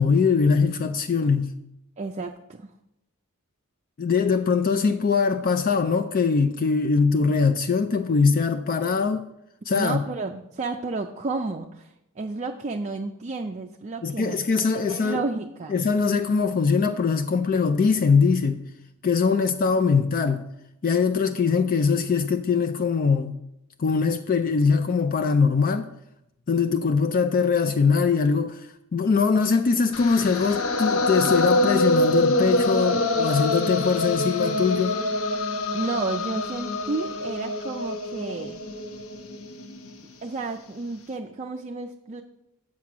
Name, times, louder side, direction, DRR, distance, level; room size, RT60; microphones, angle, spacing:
voice 1, 0.0-1.5 4.0-9.3 9.7-10.0 14.0-15.2 15.7-18.6 19.0-20.4 20.8-23.4 23.8-25.9 26.5-35.0, left 5 dB, 40° left, 0.4 m, -22 dB
voice 2, 2.0-2.7 9.7-14.4 14.7-15.8 35.7-38.6 40.2-42.2, right 3 dB, 30° right, 0.4 m, -31 dB
sound 1, 29.9-40.0, left 2 dB, 75° left, 0.8 m, -25 dB
7.3 x 6.1 x 6.0 m
head